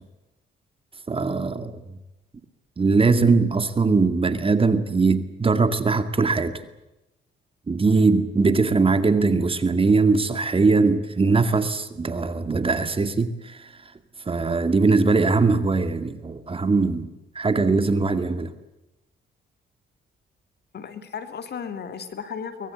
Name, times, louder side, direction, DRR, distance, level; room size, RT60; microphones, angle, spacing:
voice 1, 1.1-1.8 2.8-6.6 7.7-13.6 14.3-18.5, right 4 dB, 25° right, 2.2 m, -21 dB
voice 2, 20.7-22.7, left 6 dB, 55° left, 3.0 m, -35 dB
24.0 x 21.0 x 8.3 m
cardioid pair, 90°, 20 cm